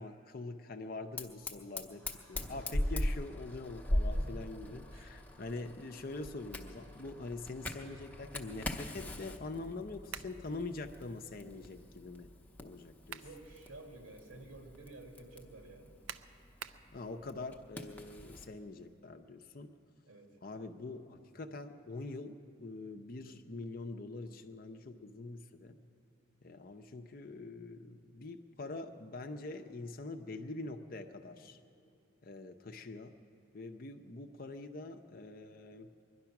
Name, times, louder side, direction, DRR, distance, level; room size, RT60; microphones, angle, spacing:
voice 1, 0.0-12.3 12.6-13.2 16.9-19.7 20.4-25.8 26.4-31.6 32.2-33.1 33.5-36.0, left 2 dB, 45° left, 6 dB, 0.6 m, -44 dB
Fire, 1.2-18.5, left 1 dB, 5° left, 0.7 m, -41 dB
voice 2, 4.1-5.1 13.2-15.9 20.1-20.4, right 2 dB, 85° right, 2 dB, 2.0 m, -52 dB
sound 1, 10.1-10.4 12.8-13.4 13.9-14.0 16.1-16.9, right 8 dB, 65° right, 0.5 m, -45 dB
22.0 x 11.0 x 5.9 m, 2.5 s
head